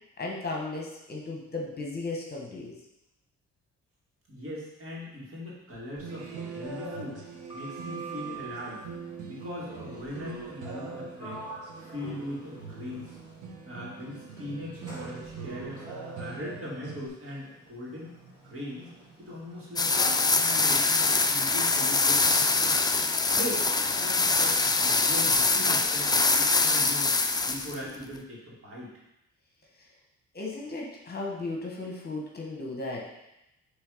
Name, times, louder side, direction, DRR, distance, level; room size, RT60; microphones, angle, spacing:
voice 1, 0.2-2.7 30.3-33.1, left 2 dB, 30° left, -2 dB, 1.2 m, -35 dB
voice 2, 4.3-8.8 9.2-11.4 11.8-13.2 13.7-15.8 16.2-18.1 18.4-18.9 19.2-22.7 23.3-23.7 23.9-28.9, left 1 dB, 45° right, -5 dB, 2.4 m, -40 dB
sound 1, 6.0-17.1, right 4 dB, 80° right, 1.3 m, -42 dB
Sliding door, 7.2-8.8 10.7-10.9 11.2-13.6 14.2-21.7, right 3 dB, 15° right, 1.7 m, -46 dB
sound 2, 19.8-27.8, left 3 dB, 15° left, 0.3 m, -24 dB
6.3 x 3.4 x 5.0 m, 0.89 s
cardioid pair, 100°, 30 cm